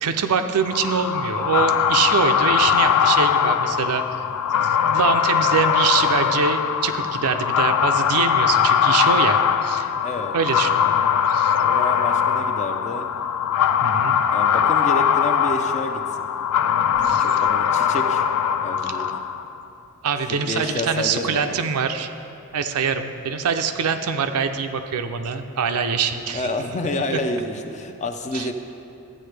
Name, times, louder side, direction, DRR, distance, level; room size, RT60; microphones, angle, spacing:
voice 1, 0.0-4.2 4.5-9.9 10.3-10.7 11.3-11.5 13.8-14.2 17.0-17.4 18.8-19.0 20.0-22.1 22.5-26.5 27.1-27.2 28.3-28.5, right 6 dB, 85° right, 8 dB, 0.5 m, -24 dB
sound 1, 0.7-19.6, left 8 dB, 85° left, 0.4 m, -21 dB
voice 2, 10.0-10.3 11.6-13.1 14.3-16.3 17.0-18.2 18.6-19.1 20.3-21.5 26.3-28.5, left 2 dB, 30° left, 6 dB, 0.5 m, -29 dB
sound 2, 16.5-21.0 21.4-21.5, right 1 dB, 25° right, 0.6 m, -46 dB
12.0 x 8.7 x 3.3 m, 2.8 s
head